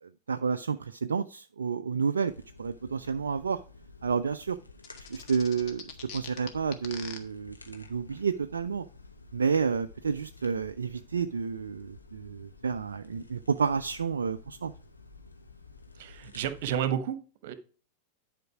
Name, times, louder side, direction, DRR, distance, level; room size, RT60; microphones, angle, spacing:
voice 1, 0.0-2.3 2.6-3.6 4.0-4.6 5.1-8.9 9.3-14.7, right 6 dB, 70° right, 0.4 m, -30 dB
sound 1, 2.3-16.8, left 3 dB, 85° left, 1.3 m, -52 dB
sound 2, 4.8-7.2, left 7 dB, 40° left, 1.5 m, -42 dB
voice 2, 15.9-17.5, right 9 dB, 50° right, 1.1 m, -31 dB
11.0 x 5.1 x 4.8 m
figure-of-eight pair, 90°, 0 cm